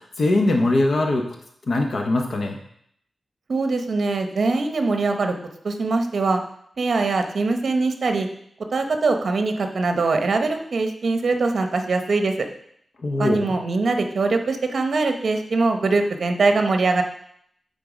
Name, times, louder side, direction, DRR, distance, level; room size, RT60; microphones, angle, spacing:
voice 1, 0.0-1.3 1.7-2.6 13.0-13.5, left 2 dB, 55° left, 3 dB, 0.9 m, -21 dB
voice 2, 3.5-5.3 5.6-6.4 6.8-8.3 8.7-12.5 13.2-17.0, right 3 dB, 55° right, 5 dB, 0.8 m, -22 dB
9.1 x 3.8 x 4.9 m, 0.69 s
wide cardioid pair, 155°, 0 cm